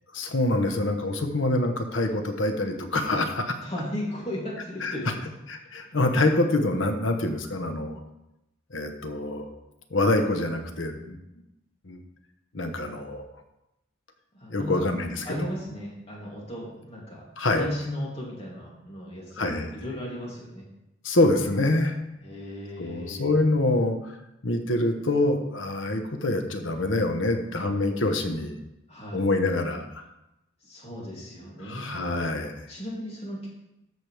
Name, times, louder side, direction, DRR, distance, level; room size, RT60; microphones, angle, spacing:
voice 1, 0.1-3.6 4.8-4.9 5.5-8.0 8.7-9.5 9.9-11.2 11.8-12.0 12.5-13.3 14.5-15.5 17.4-17.7 19.4-19.7 21.0-22.0 22.8-24.0 24.4-28.5 29.1-30.0 31.6-32.6, left 2 dB, 85° left, 6 dB, 1.1 m, -25 dB
voice 2, 3.6-5.2 14.4-14.9 15.2-17.2 17.5-19.4 19.7-20.7 22.2-23.4 28.9-29.2 30.6-31.9 32.7-33.5, left 1 dB, 30° left, -4 dB, 2.8 m, -36 dB
13.5 x 6.2 x 3.4 m, 0.90 s
head